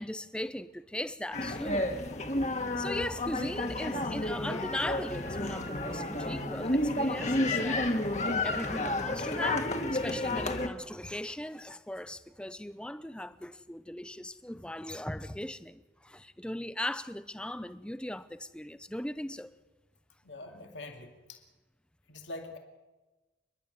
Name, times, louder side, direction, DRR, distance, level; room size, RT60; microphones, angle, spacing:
voice 1, 0.0-1.9 2.8-7.9 8.2-19.5, left 1 dB, 5° left, 0.6 m, -38 dB
sound 1, 1.3-10.7, left 1 dB, 40° left, 1.6 m, -31 dB
voice 2, 20.2-21.4 22.1-22.6, left 2 dB, 90° left, 2.4 m, -44 dB
29.0 x 11.5 x 9.3 m
head